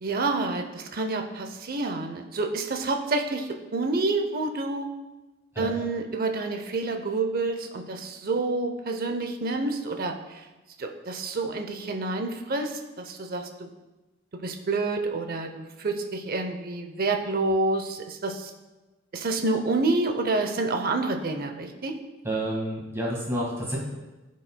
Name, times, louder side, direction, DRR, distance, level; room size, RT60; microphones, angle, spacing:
voice 1, 0.0-4.9 5.6-10.4 10.8-13.7 14.4-18.5 19.1-21.9, right 3 dB, 45° right, 5 dB, 0.7 m, -28 dB
voice 2, 5.5-5.9 22.2-23.8, right 1 dB, 15° right, -4 dB, 1.7 m, -29 dB
13.0 x 5.3 x 2.2 m, 1.1 s
head